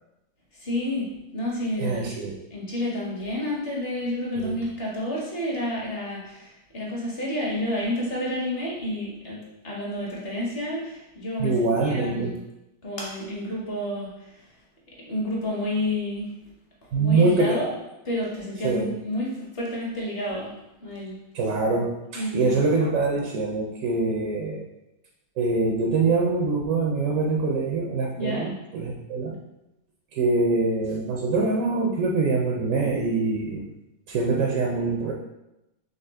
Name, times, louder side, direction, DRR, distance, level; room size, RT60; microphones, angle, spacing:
voice 1, 0.5-1.1 1.3-2.2 2.5-12.4 12.8-14.4 15.1-16.3 16.8-17.7 18.0-20.5 20.8-21.1 22.1-22.6 28.2-28.5, left 1 dB, 40° left, -4 dB, 1.2 m, -30 dB
voice 2, 1.8-2.4 4.4-4.5 11.4-12.3 16.9-17.6 18.6-18.9 21.3-24.6 25.4-29.3 30.1-33.7 34.1-35.1, right 3 dB, 65° right, -1 dB, 0.8 m, -24 dB
4.1 x 3.4 x 3.5 m, 0.91 s
omnidirectional pair, 1.8 m